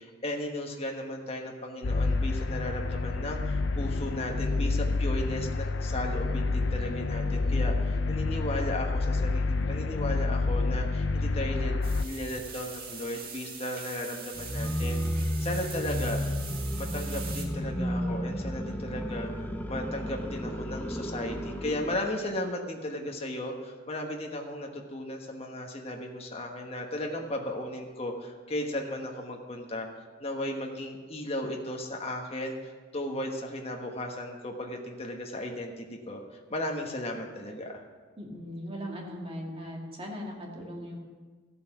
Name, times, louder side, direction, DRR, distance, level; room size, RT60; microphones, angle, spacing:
voice 1, 0.0-16.2 16.8-37.8, left 1 dB, 35° left, 1 dB, 1.3 m, -35 dB
sound 1, 1.8-12.0, left 3 dB, 75° left, 0.6 m, -28 dB
sound 2, 11.8-17.5, right 5 dB, 55° right, 1.9 m, -43 dB
sound 3, 14.3-22.0, equal, 10° left, 0.7 m, -32 dB
voice 2, 38.2-41.0, equal, 30° right, -1 dB, 2.2 m, -39 dB
14.0 x 8.4 x 6.0 m, 1.4 s
head